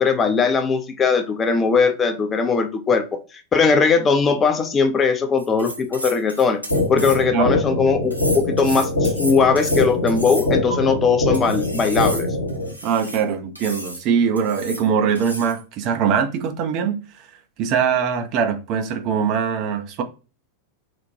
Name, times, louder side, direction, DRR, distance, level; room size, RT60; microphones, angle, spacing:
voice 1, 0.0-6.6 6.9-12.3, left 5 dB, 20° left, 0.4 m, -19 dB
sound 1, 5.4-7.4 8.1-10.8 11.3-13.2 13.6-14.0 14.4-14.9 15.1-15.6, right 1 dB, 90° right, 0.7 m, -32 dB
sound 2, 6.7-12.7, left 2 dB, 80° left, 1.0 m, -23 dB
voice 2, 12.8-17.0 17.6-20.0, right 7 dB, 40° right, 0.4 m, -22 dB
2.9 x 2.1 x 2.7 m
figure-of-eight pair, 90°, 0 cm